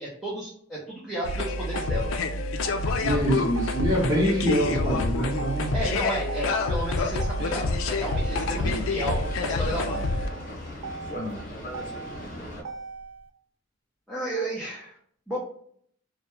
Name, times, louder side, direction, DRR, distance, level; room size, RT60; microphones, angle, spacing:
voice 1, 0.0-2.1 5.7-10.1 14.1-14.9 15.3-15.4, right 1 dB, ahead, -8 dB, 0.5 m, -32 dB
sound 1, 1.2-10.3, left 3 dB, 90° left, 0.3 m, -27 dB
Motor vehicle (road), 1.3-13.3, right 4 dB, 65° right, 0.3 m, -40 dB
voice 2, 3.0-5.7 8.6-8.8 11.1-11.4, equal, 15° right, -5 dB, 0.9 m, -25 dB
Boat Water vehicle, 7.4-12.6, equal, 45° left, 0.7 m, -39 dB
2.2 x 2.1 x 3.0 m, 0.62 s
head